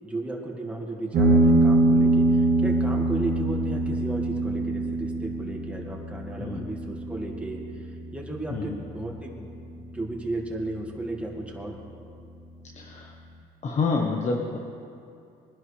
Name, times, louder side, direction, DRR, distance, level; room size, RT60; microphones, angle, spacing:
voice 1, 0.0-9.5 9.8-11.8, right 2 dB, 5° right, -1 dB, 1.9 m, -34 dB
sound 1, 1.1-10.2, right 2 dB, 60° right, 2.1 m, -24 dB
voice 2, 12.7-13.1 13.6-14.6, left 4 dB, 45° left, 1 dB, 1.2 m, -28 dB
21.5 x 10.5 x 3.4 m, 2.6 s
cardioid pair, 110°, 17 cm